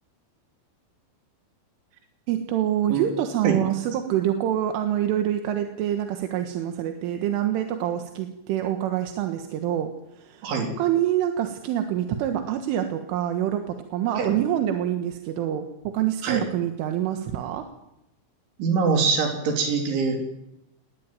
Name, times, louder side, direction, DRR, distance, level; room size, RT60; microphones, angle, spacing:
voice 1, 2.3-10.5 10.8-17.7, right 11 dB, 90° right, 5 dB, 4.0 m, -26 dB
voice 2, 18.6-20.2, right 5 dB, 75° right, 3 dB, 6.2 m, -23 dB
19.5 x 19.5 x 9.2 m, 0.87 s
omnidirectional pair, 5.5 m